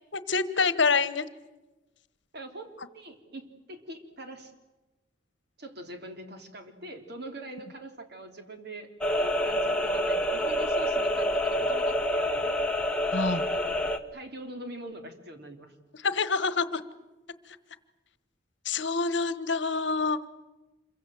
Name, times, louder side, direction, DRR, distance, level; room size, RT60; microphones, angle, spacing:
voice 1, 0.1-1.3 13.1-13.4 16.0-16.8 18.6-20.3, left 4 dB, 65° left, 14 dB, 1.3 m, -26 dB
voice 2, 2.3-4.5 5.6-8.9 9.5-12.7 13.4-15.8, right 1 dB, 55° right, 5 dB, 3.4 m, -43 dB
sound 1, 9.0-14.0, equal, 5° left, 1.4 m, -27 dB
27.5 x 23.5 x 7.8 m, 1.1 s
head